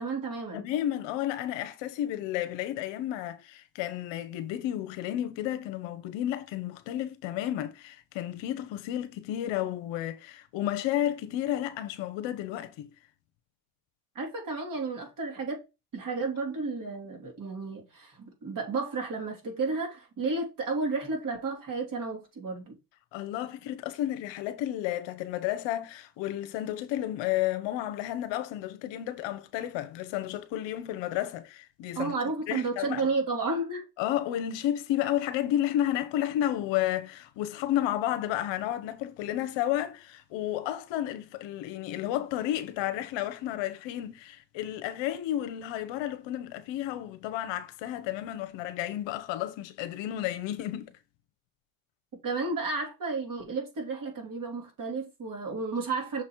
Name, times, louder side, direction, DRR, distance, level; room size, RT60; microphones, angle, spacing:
voice 1, 0.0-0.6 14.1-15.6 15.9-22.8 31.9-33.8 52.2-56.2, right 3 dB, 40° right, 3.1 m, -32 dB
voice 2, 0.5-12.9 23.1-32.2 32.5-33.0 34.0-50.9, left 12 dB, 65° left, 1.0 m, -32 dB
6.5 x 4.1 x 4.6 m
cardioid pair, 115°, 48 cm